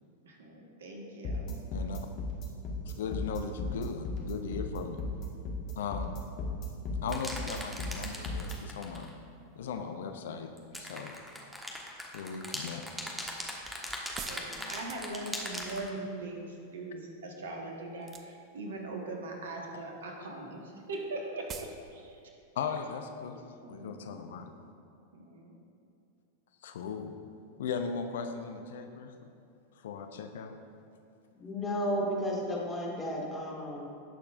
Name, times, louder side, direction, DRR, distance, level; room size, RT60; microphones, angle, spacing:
voice 1, 0.2-1.5 14.2-22.2 23.6-24.2 25.1-25.5, right 2 dB, 60° right, 1 dB, 1.5 m, -41 dB
sound 1, 1.2-8.5, left 3 dB, 40° left, 1.6 m, -35 dB
voice 2, 2.9-5.1 5.8-6.2 7.0-9.1 9.5-10.5 10.8-11.2 12.1-12.8 14.5-14.7 22.6-24.5 26.6-27.2 27.6-29.1 29.8-30.6, left 6 dB, 60° left, 6 dB, 0.6 m, -38 dB
sound 2, 7.1-9.1 10.6-15.9, equal, 5° right, 1.3 m, -39 dB
sound 3, 14.2-15.6 18.0-18.6 18.9-19.5 19.8-20.0 20.2-20.3 20.5-20.6 21.0-21.1 21.5-21.8 22.1-22.2, right 6 dB, 30° right, 0.6 m, -46 dB
voice 3, 31.3-33.9, equal, 15° left, -3 dB, 2.2 m, -33 dB
18.0 x 6.7 x 2.5 m, 2.5 s
figure-of-eight pair, 90°, 0 cm